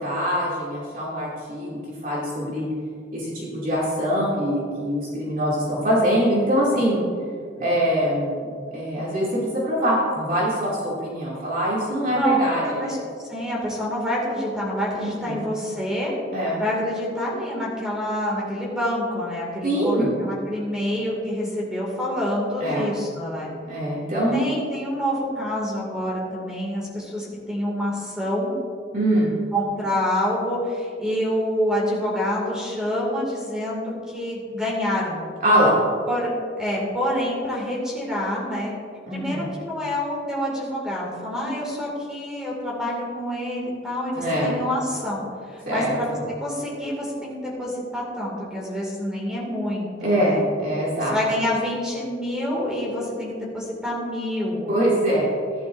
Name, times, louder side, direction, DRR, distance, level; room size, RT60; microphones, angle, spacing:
voice 1, 0.0-2.7 3.1-7.0 7.6-12.9 14.9-15.5 16.3-16.6 19.6-20.1 22.6-22.9 23.7-24.5 28.9-29.3 35.4-35.8 39.0-39.5 44.1-44.5 45.6-46.2 50.0-51.2 54.7-55.3, equal, 50° right, -7 dB, 2.7 m, -23 dB
voice 2, 12.1-13.0 13.3-16.1 16.6-23.5 24.3-28.5 29.5-35.2 36.1-36.3 36.6-38.7 39.1-50.4 51.1-54.7, equal, 5° right, -4 dB, 2.4 m, -27 dB
14.5 x 11.0 x 2.7 m, 2.1 s
head